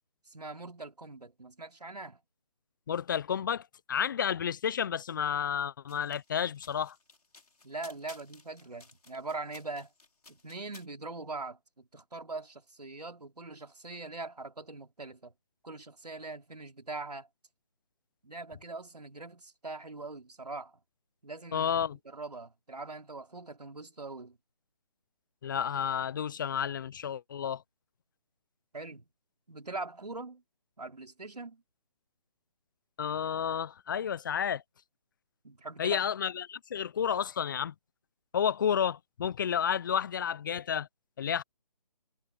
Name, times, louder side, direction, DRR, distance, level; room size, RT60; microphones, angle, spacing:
voice 1, 0.3-2.2 7.6-9.9 10.3-15.3 15.6-17.3 18.2-20.8 21.2-24.4 28.7-29.1 29.5-30.4 30.8-31.6 35.4-36.1, right 3 dB, 85° right, 3.8 m, -42 dB
voice 2, 2.9-6.9 21.5-22.0 25.4-27.6 33.0-34.6 35.8-37.7 38.3-40.9 41.2-41.4, left 8 dB, 30° left, 0.7 m, -31 dB
sound 1, 5.9-10.9, left 3 dB, 75° left, 6.4 m, -56 dB
figure-of-eight pair, 150°, 20 cm